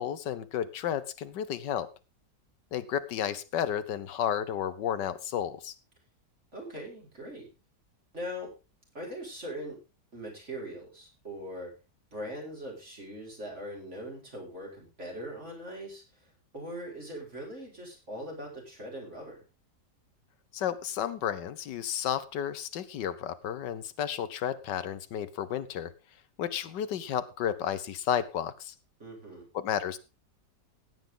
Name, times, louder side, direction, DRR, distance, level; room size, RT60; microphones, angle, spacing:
voice 1, 0.0-1.9 2.7-5.7 20.5-25.9 26.4-28.7 29.5-30.0, left 9 dB, 90° left, 13 dB, 1.6 m, -32 dB
voice 2, 6.5-7.5 8.1-8.5 8.9-9.8 10.1-11.7 12.1-19.4 29.0-29.5, equal, 40° right, -2 dB, 5.2 m, -41 dB
16.0 x 9.3 x 3.8 m, 0.30 s
omnidirectional pair, 1.8 m